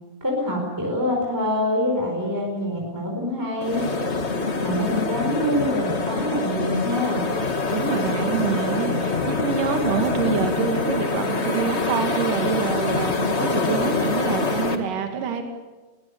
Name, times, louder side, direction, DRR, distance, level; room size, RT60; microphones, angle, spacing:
voice 1, 0.2-3.8 4.6-7.2, left 1 dB, 5° right, 0 dB, 4.5 m, -25 dB
sound 1, 3.6-14.7, left 3 dB, 40° left, 0.9 m, -25 dB
voice 2, 7.7-15.4, right 7 dB, 70° right, 4 dB, 3.8 m, -26 dB
22.5 x 22.0 x 7.0 m, 1.2 s
omnidirectional pair, 3.9 m